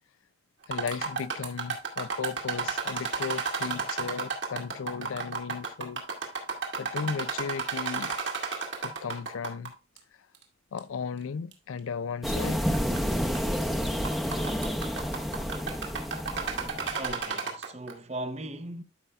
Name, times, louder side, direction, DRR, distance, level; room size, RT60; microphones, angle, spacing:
sound 1, 0.6-9.7 10.0-10.1 10.8-10.9 11.5-11.6 12.7-13.0 13.3-13.6 13.9-17.9, right 5 dB, 65° right, 2.1 m, -32 dB
voice 1, 0.7-6.0 6.8-8.2 8.8-9.7 10.7-12.8, left 6 dB, 85° left, 0.4 m, -35 dB
sound 2, 12.2-17.1, equal, ahead, 0.7 m, -30 dB
voice 2, 16.9-18.8, right 1 dB, 30° right, 0.8 m, -38 dB
13.0 x 5.5 x 2.4 m
head